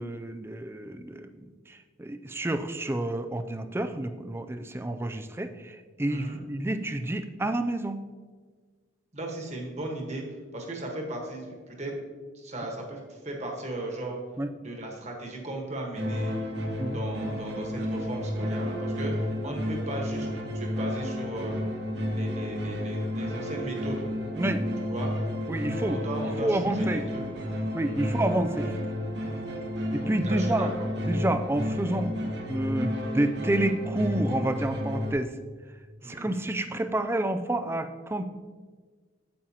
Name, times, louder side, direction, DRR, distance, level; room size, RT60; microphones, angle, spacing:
voice 1, 0.0-8.0 14.4-14.5 16.8-17.0 19.5-19.6 24.4-24.6 25.5-26.0 26.4-27.1 27.7-28.8 29.9-30.7 31.1-32.1 32.5-35.3 36.0-38.3, right 1 dB, 10° right, 8 dB, 0.3 m, -29 dB
voice 2, 6.1-6.4 9.1-10.2 10.5-12.0 12.3-14.2 14.6-16.4 16.9-20.3 20.5-21.6 22.1-24.0 24.8-25.1 25.9-27.2 27.8-28.1 30.2-30.7 36.0-36.3, right 2 dB, 35° right, 0 dB, 1.3 m, -36 dB
sound 1, 15.9-35.1, left 1 dB, 55° right, 1.0 m, -31 dB
8.6 x 7.6 x 2.9 m, 1.5 s
head